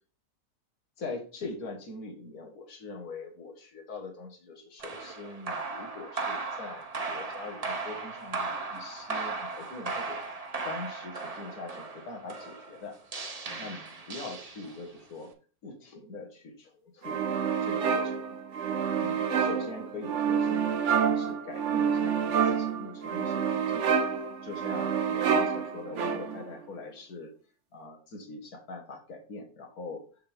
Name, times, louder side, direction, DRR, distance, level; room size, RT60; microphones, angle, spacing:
voice 1, 1.0-10.2 10.6-13.0 13.6-15.3 15.6-17.2 17.6-18.2 19.0-23.9 24.4-27.3 27.7-30.1, left 3 dB, 70° left, 2 dB, 2.1 m, -42 dB
sound 1, 4.8-15.0, right 3 dB, 30° right, 0.9 m, -37 dB
sound 2, 17.0-26.5, right 7 dB, 55° right, 1.0 m, -28 dB
6.8 x 6.6 x 3.5 m, 0.38 s
omnidirectional pair, 1.6 m